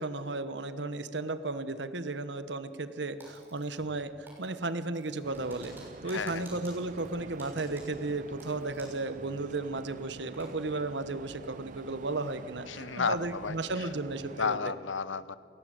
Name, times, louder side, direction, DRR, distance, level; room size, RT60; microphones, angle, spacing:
voice 1, 0.0-5.7 6.0-14.6, right 2 dB, 65° right, 12 dB, 1.2 m, -34 dB
Typing, 3.2-4.0 4.3-9.1 9.4-9.5 9.9-10.5, right 2 dB, 10° right, 6.7 m, -53 dB
sound 1, 5.2-14.6, right 4 dB, 40° right, 0.4 m, -48 dB
voice 2, 6.1-6.4 12.7-13.6 14.4-15.4, left 5 dB, 85° left, 16 dB, 0.9 m, -32 dB
22.0 x 17.5 x 9.0 m, 2.5 s
head